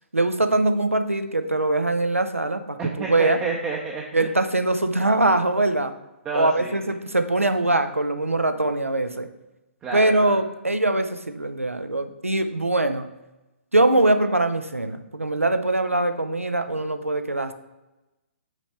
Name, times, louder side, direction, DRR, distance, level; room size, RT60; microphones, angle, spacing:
voice 1, 0.1-3.4 4.1-5.9 6.3-9.3 9.9-13.1 13.7-17.5, right 2 dB, 85° right, 9 dB, 0.7 m, -22 dB
voice 2, 2.8-4.3 6.2-6.7 9.8-10.4, right 4 dB, 15° right, -1 dB, 0.6 m, -30 dB
6.1 x 5.2 x 4.4 m, 1.0 s
figure-of-eight pair, 130°, 7 cm